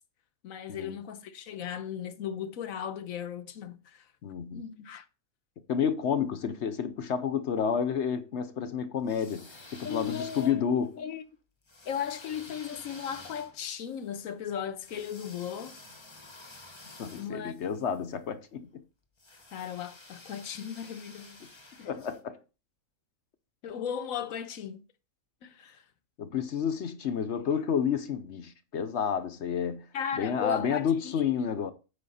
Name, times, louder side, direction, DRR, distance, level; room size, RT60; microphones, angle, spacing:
voice 1, 0.4-4.0 4.5-5.0 9.8-11.2 11.8-15.8 17.1-17.5 19.5-21.4 21.8-21.9 23.6-24.8 25.4-25.8 29.9-31.5, left 8 dB, 75° left, 1.2 m, -37 dB
voice 2, 4.2-4.6 5.7-11.0 17.0-18.8 21.8-22.4 26.2-29.9 30.1-31.7, left 7 dB, 60° left, 1.0 m, -30 dB
sound 1, 9.0-10.9 11.7-18.0 19.2-22.2, left 2 dB, 20° left, 1.0 m, -51 dB
8.6 x 5.2 x 4.2 m
omnidirectional pair, 1.5 m